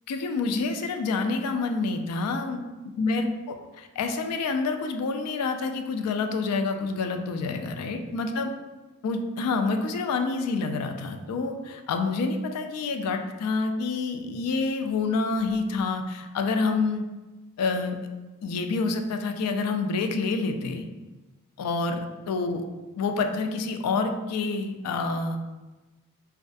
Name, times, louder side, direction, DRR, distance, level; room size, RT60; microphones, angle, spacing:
voice 1, 0.1-2.6 3.0-8.5 9.0-17.1 17.6-18.0 18.4-20.9 21.6-22.6 23.0-25.4, left 4 dB, 85° left, 6 dB, 0.3 m, -28 dB
2.4 x 2.2 x 2.5 m, 1.2 s
head